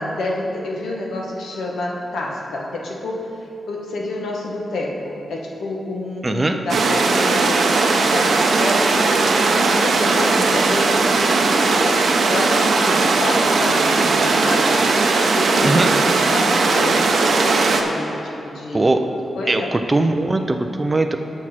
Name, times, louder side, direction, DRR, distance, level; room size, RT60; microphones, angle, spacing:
voice 1, 0.0-14.9 15.1-19.0 19.3-19.7, left 2 dB, 90° left, -1 dB, 1.3 m, -28 dB
voice 2, 6.2-6.6 15.6-15.9 18.7-19.0 19.5-21.2, right 2 dB, 20° right, 5 dB, 0.4 m, -19 dB
sound 1, 6.7-17.8, right 3 dB, 60° right, 0.7 m, -18 dB
7.8 x 6.2 x 5.8 m, 2.8 s
wide cardioid pair, 145°, 0 cm